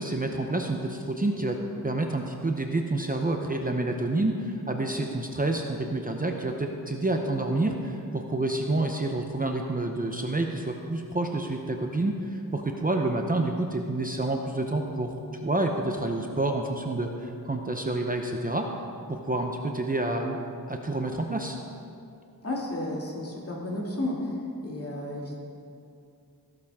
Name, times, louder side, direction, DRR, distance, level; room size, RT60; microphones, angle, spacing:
voice 1, 0.0-1.6 1.8-15.1 15.4-18.7 19.1-20.4 20.7-21.6, right 2 dB, 25° right, 3 dB, 0.7 m, -28 dB
voice 2, 22.4-24.2 24.6-25.4, left 1 dB, 40° left, -3 dB, 2.3 m, -32 dB
15.5 x 12.0 x 3.6 m, 2.6 s
wide cardioid pair, 125°, 37 cm